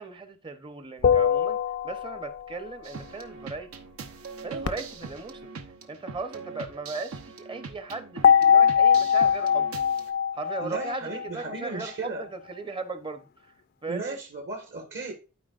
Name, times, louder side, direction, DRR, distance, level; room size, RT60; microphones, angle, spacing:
voice 1, 0.0-3.7 4.4-5.5 5.9-9.7 10.3-13.5 13.8-14.2, right 3 dB, 25° right, 0.8 m, -37 dB
sound 1, 1.0-2.6 8.2-11.6, left 8 dB, 45° left, 0.4 m, -22 dB
sound 2, 2.8-10.1, right 4 dB, 75° right, 0.8 m, -42 dB
Fireworks, 4.6-7.4 8.1-8.2 8.9-9.3 11.2-11.3, left 3 dB, 90° left, 0.7 m, -42 dB
voice 2, 10.6-12.2 13.9-15.1, right 3 dB, 55° right, 1.6 m, -35 dB
12.5 x 4.7 x 2.4 m
head